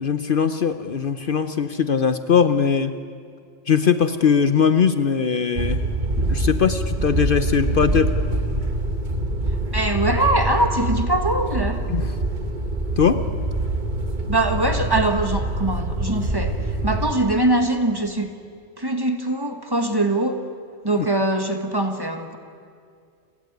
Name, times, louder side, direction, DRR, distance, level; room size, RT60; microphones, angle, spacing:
voice 1, 0.0-2.9 3.7-5.8 6.3-8.2 11.9-12.1 13.0-13.2 21.0-21.1, left 6 dB, 55° left, 10 dB, 0.9 m, -20 dB
sound 1, 5.6-17.1, right 1 dB, 45° right, 1.6 m, -25 dB
voice 2, 9.7-11.8 14.3-16.5 16.8-18.3 18.8-20.4 20.8-22.4, right 2 dB, 20° right, 6 dB, 1.7 m, -22 dB
29.5 x 17.5 x 9.5 m, 2.2 s
omnidirectional pair, 1.1 m